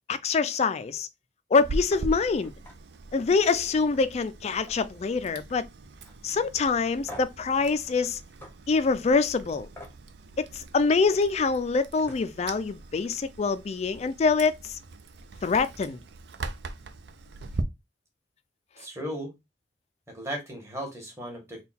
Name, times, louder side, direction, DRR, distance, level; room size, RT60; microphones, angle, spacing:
voice 1, 0.1-1.1 1.5-2.5 3.1-5.7 6.2-8.2 8.7-9.7 10.4-14.8 15.4-16.0, left 4 dB, 35° left, 0.3 m, -25 dB
Chewing mastication, 1.6-17.6, right 2 dB, 65° right, 0.5 m, -41 dB
sound 1, 1.9-2.0 2.4-2.8 3.2-3.3 3.7-4.9 5.2-5.6 6.0-6.2 7.1-7.4 8.4-8.5 9.7-10.0 11.6-11.7 12.0-12.3, left 1 dB, 15° left, 0.8 m, -46 dB
voice 2, 18.8-19.3 20.1-21.6, equal, 15° right, 1.4 m, -36 dB
3.8 x 2.3 x 4.2 m
head